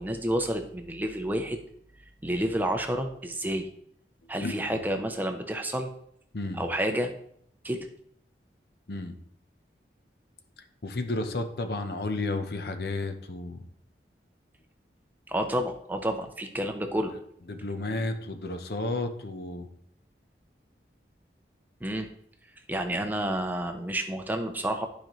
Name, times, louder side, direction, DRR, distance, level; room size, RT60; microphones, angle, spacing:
voice 1, 0.0-1.6 2.2-3.7 4.3-5.9 6.5-7.1 7.6-7.9 15.3-17.1 21.8-22.1 22.7-24.9, right 1 dB, 10° right, 5 dB, 0.5 m, -30 dB
voice 2, 6.3-6.6 8.9-9.2 10.8-13.7 17.5-19.7, left 2 dB, 65° left, 6 dB, 0.8 m, -32 dB
11.5 x 5.1 x 3.1 m, 0.69 s
head